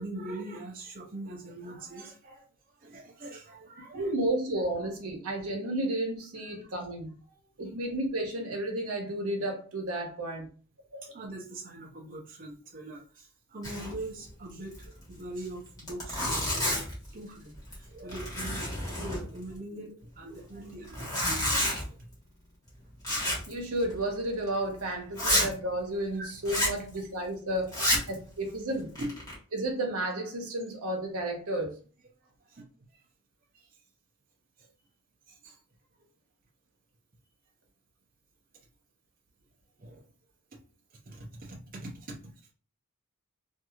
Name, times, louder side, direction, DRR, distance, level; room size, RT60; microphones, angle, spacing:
voice 1, 0.0-2.4 2.8-4.1 6.4-6.6 7.3-7.4 11.0-21.8 26.1-26.3 27.9-28.0 29.0-29.2 32.5-33.0 35.3-35.6 39.8-40.0 41.1-42.3, right 2 dB, 40° right, -2 dB, 0.6 m, -42 dB
voice 2, 3.9-7.2 7.6-10.5 10.9-11.0 23.5-27.8 28.1-28.9 29.5-31.8, right 1 dB, 85° right, 1 dB, 1.0 m, -32 dB
Zipper (clothing), 13.6-14.0 14.3-14.4 14.7-14.8 15.4-15.5 15.8-17.0 17.6-17.8 18.1-19.5 20.8-21.8 23.0-23.5 23.8-24.0 24.5-24.6 25.1-25.5 26.4-26.8 27.7-28.1 28.7-29.3, left 1 dB, 20° left, 1.2 m, -29 dB
2.9 x 2.6 x 2.4 m, 0.39 s
head